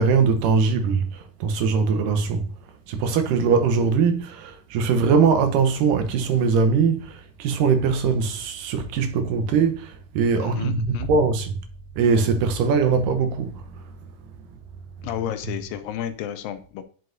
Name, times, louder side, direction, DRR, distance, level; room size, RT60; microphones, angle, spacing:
voice 1, 0.0-2.5 2.9-11.5 12.0-13.5, right 5 dB, 75° right, 2.4 m, -21 dB
voice 2, 10.4-11.1 15.0-16.8, left 11 dB, 85° left, 2.4 m, -31 dB
9.3 x 6.2 x 2.6 m
omnidirectional pair, 4.0 m